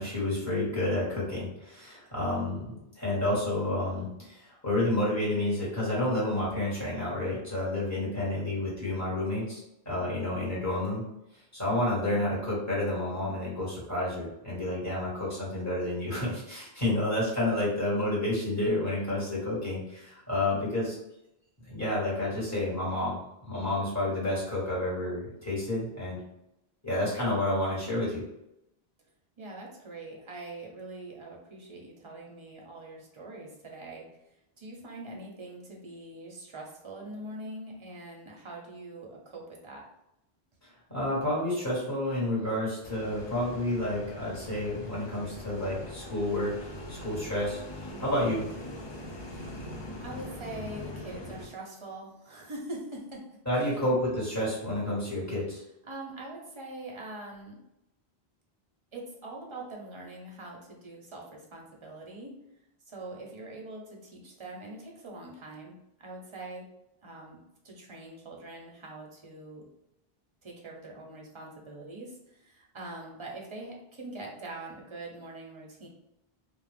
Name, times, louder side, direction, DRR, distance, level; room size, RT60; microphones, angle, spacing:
voice 1, 0.0-11.0 11.5-21.0 21.6-23.2 23.4-26.2 26.8-28.2 40.9-46.5 46.9-47.6 48.0-48.4 53.4-55.6, left 1 dB, 15° left, -8 dB, 1.4 m, -30 dB
voice 2, 29.4-39.8 50.0-53.2 53.6-53.8 55.8-57.6 58.9-62.3 62.9-66.6 67.0-67.4 67.6-69.7 70.4-75.9, right 2 dB, 35° right, -1 dB, 0.7 m, -43 dB
sound 1, 42.8-51.5, left 1 dB, 45° left, 0.3 m, -42 dB
2.5 x 2.4 x 3.3 m, 0.84 s
omnidirectional pair, 1.0 m